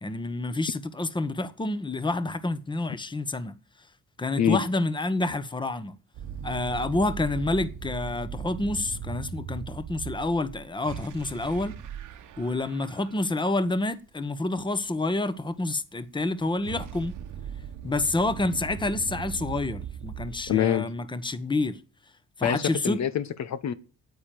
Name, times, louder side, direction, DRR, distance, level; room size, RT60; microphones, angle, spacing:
voice 1, 0.0-3.5 4.2-5.9 6.4-11.8 12.4-17.1 17.8-21.8 22.4-23.0, left 2 dB, 15° left, 1.2 m, -28 dB
sound 1, 6.1-13.3 16.2-20.6, right 8 dB, 80° right, 1.3 m, -39 dB
voice 2, 20.5-20.8 22.4-23.7, left 10 dB, 65° left, 1.2 m, -25 dB
9.5 x 8.9 x 9.4 m
cardioid pair, 90°, 30 cm